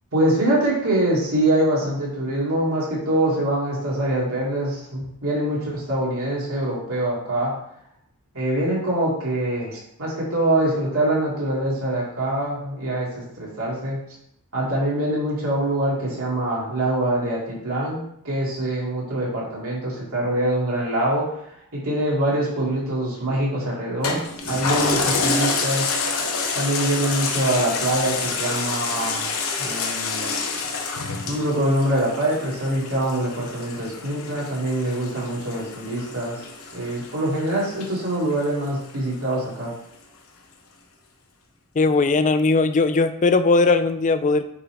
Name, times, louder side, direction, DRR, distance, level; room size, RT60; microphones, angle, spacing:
voice 1, 0.1-7.5 8.3-14.0 14.5-21.3 21.7-25.9 26.5-29.3 29.6-30.3 31.3-36.5 36.7-39.7, right 1 dB, 70° right, -6 dB, 2.6 m, -24 dB
Toilet flush, 24.0-38.9 39.3-39.4, left 4 dB, 65° left, 0.9 m, -28 dB
voice 2, 41.8-44.5, left 3 dB, 35° left, 10 dB, 0.4 m, -19 dB
8.7 x 3.6 x 3.4 m, 0.71 s
head